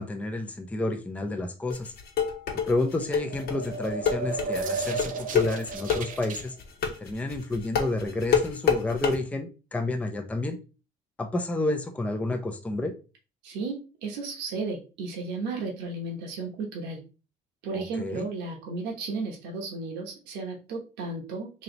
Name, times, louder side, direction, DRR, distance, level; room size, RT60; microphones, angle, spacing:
voice 1, 0.0-1.9 2.6-6.6 7.0-10.6 11.2-12.9 17.7-18.3, left 2 dB, 10° left, 4 dB, 0.5 m, -30 dB
sound 1, 1.7-9.1, left 7 dB, 70° left, 1.1 m, -26 dB
sound 2, 3.1-6.4, right 3 dB, 55° right, 0.6 m, -33 dB
voice 2, 13.4-17.0 17.6-21.6, right 3 dB, 90° right, -1 dB, 1.2 m, -34 dB
3.2 x 2.9 x 3.9 m, 0.33 s
cardioid pair, 110°, 17 cm